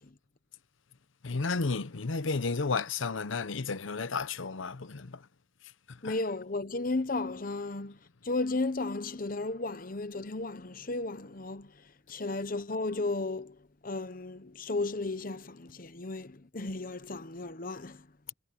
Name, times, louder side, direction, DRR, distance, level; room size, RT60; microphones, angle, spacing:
voice 1, 1.2-5.3 5.9-6.1, left 4 dB, 85° left, 0.8 m, -32 dB
voice 2, 6.0-18.1, left 2 dB, 45° left, 1.0 m, -34 dB
head